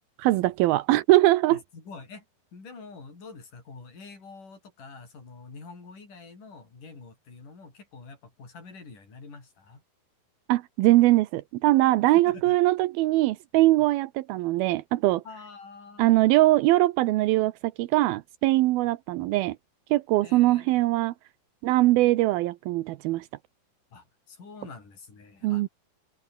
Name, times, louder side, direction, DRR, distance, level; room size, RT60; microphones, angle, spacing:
voice 1, 0.2-1.6 10.5-15.2 16.0-19.6 19.9-21.1 21.6-23.3 25.4-25.7, right 17 dB, 85° right, 2.7 m, -22 dB
voice 2, 1.5-2.3 2.5-9.8 12.1-12.6 15.3-16.2 20.2-20.9 23.9-25.7, left 4 dB, 60° left, 8.8 m, -46 dB
omnidirectional pair, 4.2 m